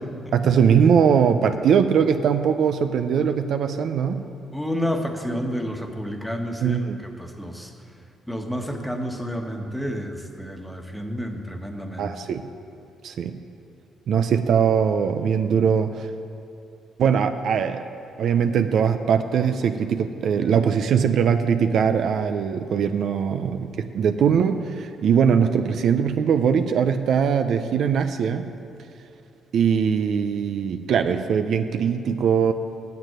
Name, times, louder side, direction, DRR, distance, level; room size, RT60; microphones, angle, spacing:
voice 1, 0.3-4.2 6.6-7.0 12.0-12.4 13.0-13.4 14.1-16.1 17.0-17.8 18.2-28.5 29.5-32.5, right 7 dB, 70° right, 8 dB, 0.6 m, -21 dB
voice 2, 4.5-6.8 7.2-7.7 8.3-12.1, equal, 5° left, 3 dB, 1.3 m, -30 dB
9.4 x 7.5 x 9.1 m, 2.7 s
cardioid pair, 90°, 0 cm